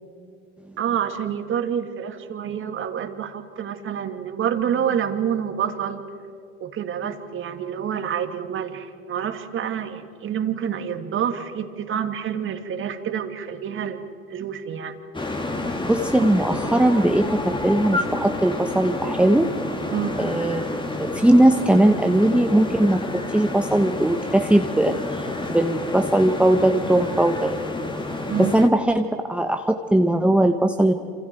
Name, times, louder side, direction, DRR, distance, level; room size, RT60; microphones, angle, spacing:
voice 1, 0.8-6.0 6.6-14.9 16.2-16.3 19.9-20.2 28.3-28.5, right 8 dB, 40° right, 7 dB, 2.4 m, -28 dB
sound 1, 15.1-28.7, left 2 dB, 15° left, 2.6 m, -29 dB
voice 2, 15.8-19.5 20.2-20.6 21.0-27.6 28.4-30.9, right 1 dB, 5° right, 5 dB, 1.1 m, -19 dB
27.5 x 27.0 x 4.6 m, 2.5 s
hypercardioid pair, 90°, 32 cm